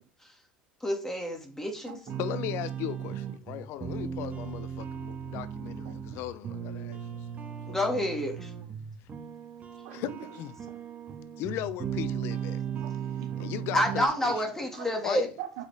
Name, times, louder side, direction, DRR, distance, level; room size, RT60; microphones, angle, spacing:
voice 1, 0.8-2.0 7.7-8.5 13.7-15.3, left 1 dB, 10° left, 2.4 m, -28 dB
sound 1, 2.1-14.1, right 8 dB, 30° right, 1.8 m, -37 dB
voice 2, 2.2-7.0 7.7-7.8 9.9-10.5 11.4-12.6 13.4-14.4 15.0-15.3, left 12 dB, 60° left, 0.8 m, -37 dB
voice 3, 9.8-10.3 10.7-10.8 12.7-13.5 14.0-14.3 14.7-15.7, right 10 dB, 70° right, 2.2 m, -43 dB
7.2 x 5.1 x 5.0 m
hypercardioid pair, 90°, 5 cm